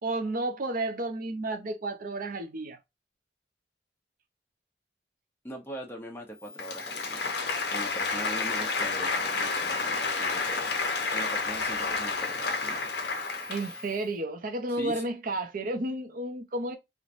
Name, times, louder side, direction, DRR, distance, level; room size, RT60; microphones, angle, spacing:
voice 1, 0.0-2.8 13.5-16.8, right 2 dB, 50° right, 0.5 m, -32 dB
voice 2, 5.4-7.4 7.7-10.8 11.1-12.9 14.7-15.0, right 1 dB, 15° left, 0.8 m, -41 dB
Applause, 6.5-13.9, left 4 dB, 65° left, 0.7 m, -30 dB
3.1 x 2.1 x 2.5 m
head